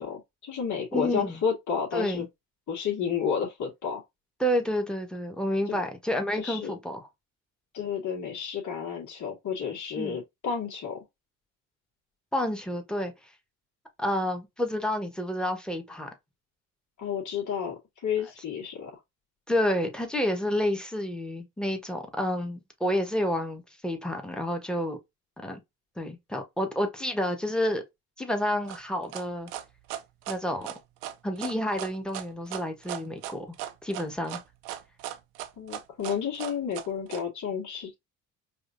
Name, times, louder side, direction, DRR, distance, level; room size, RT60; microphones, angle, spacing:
voice 1, 0.0-2.3 2.7-4.0 5.7-5.8 6.3-6.7 7.7-11.0 17.0-18.9 35.6-37.9, left 7 dB, 55° left, 2.1 m, -31 dB
voice 2, 0.9-1.4 1.9-2.3 4.4-7.1 10.0-10.2 12.3-13.1 14.0-16.1 19.5-25.0 25.4-25.6 26.0-27.8 28.2-29.5 30.3-30.7 31.2-33.5 33.8-34.4, left 1 dB, ahead, 1.4 m, -29 dB
sound 1, 28.7-37.2, right 12 dB, 75° right, 0.7 m, -37 dB
4.9 x 2.8 x 2.6 m
supercardioid pair, 65°, 37 cm